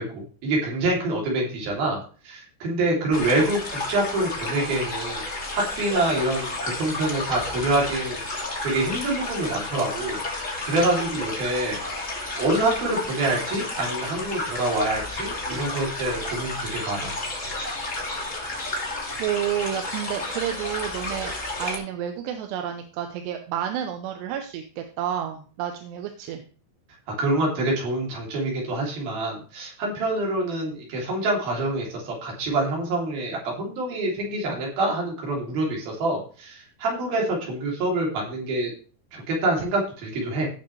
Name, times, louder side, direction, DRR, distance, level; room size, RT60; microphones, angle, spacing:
voice 1, 0.0-2.0 2.3-5.2 5.5-8.2 8.6-10.2 10.6-17.2 27.2-38.7 39.1-40.5, right 2 dB, 60° right, -2 dB, 4.7 m, -26 dB
sound 1, 3.1-21.8, left 2 dB, 25° left, 2.1 m, -31 dB
voice 2, 19.2-26.4, right 10 dB, 85° right, 5 dB, 2.9 m, -30 dB
17.0 x 6.8 x 3.2 m, 0.39 s
omnidirectional pair, 4.8 m